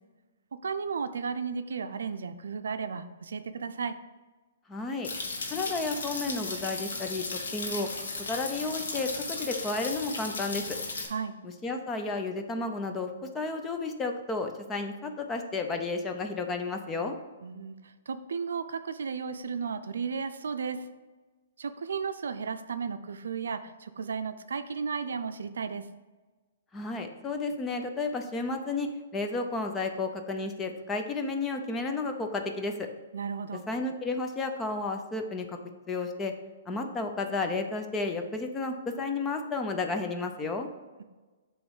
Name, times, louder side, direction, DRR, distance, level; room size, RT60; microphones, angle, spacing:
voice 1, 0.5-4.0 11.1-11.4 17.4-20.9 21.6-25.8 33.1-33.6, right 5 dB, 85° right, 10 dB, 0.5 m, -34 dB
voice 2, 4.7-5.1 5.5-7.2 7.5-7.9 8.3-10.8 11.4-17.1 26.7-32.9 33.7-35.6 35.9-36.3 36.7-40.7, left 3 dB, 15° left, 4 dB, 0.6 m, -32 dB
sound 1, 5.0-11.1, left 3 dB, 80° left, 1.5 m, -35 dB
7.8 x 3.1 x 5.5 m, 1.3 s
hypercardioid pair, 145°, 0 cm